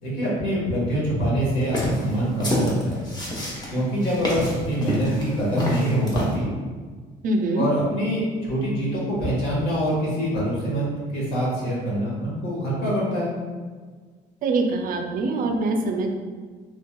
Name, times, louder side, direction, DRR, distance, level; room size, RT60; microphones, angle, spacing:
voice 1, 0.0-3.0 3.7-6.5 7.5-13.3, equal, 70° left, -6 dB, 1.4 m, -25 dB
sound 1, 1.6-6.4, left 1 dB, 25° left, 0.8 m, -27 dB
voice 2, 7.2-7.6 14.4-16.1, right 2 dB, 55° right, 4 dB, 0.4 m, -23 dB
3.2 x 2.7 x 2.2 m, 1.5 s
cardioid pair, 110°, 17 cm